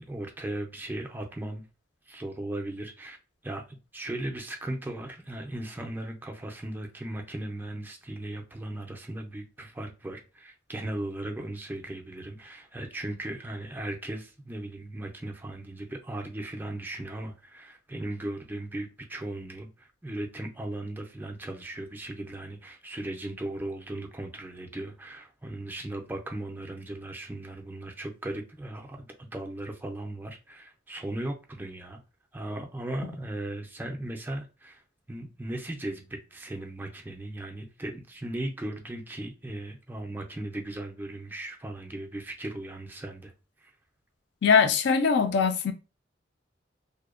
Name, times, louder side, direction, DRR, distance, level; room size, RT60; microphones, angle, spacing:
voice 1, 0.0-1.6 2.1-3.2 3.4-32.0 32.3-34.8 35.1-43.3 43.6-43.7, right 1 dB, 10° right, 0.3 m, -37 dB
voice 2, 44.4-45.7, left 6 dB, 65° left, 0.4 m, -22 dB
2.6 x 2.1 x 2.4 m
head